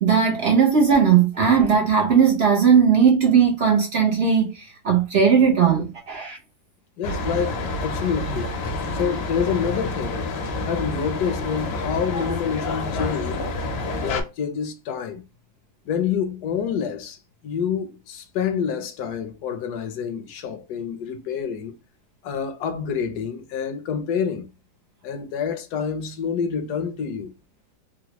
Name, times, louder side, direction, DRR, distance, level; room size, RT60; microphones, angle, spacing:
voice 1, 0.0-6.4, right 7 dB, 70° right, 0.6 m, -18 dB
sound 1, 7.0-14.2, left 2 dB, 85° left, 1.5 m, -28 dB
voice 2, 7.0-8.5 8.9-10.2 10.6-13.5 14.0-15.2 15.9-17.2 17.4-21.8 22.2-24.5 25.0-27.3, left 7 dB, 70° left, 1.0 m, -27 dB
3.9 x 2.1 x 2.9 m
omnidirectional pair, 2.0 m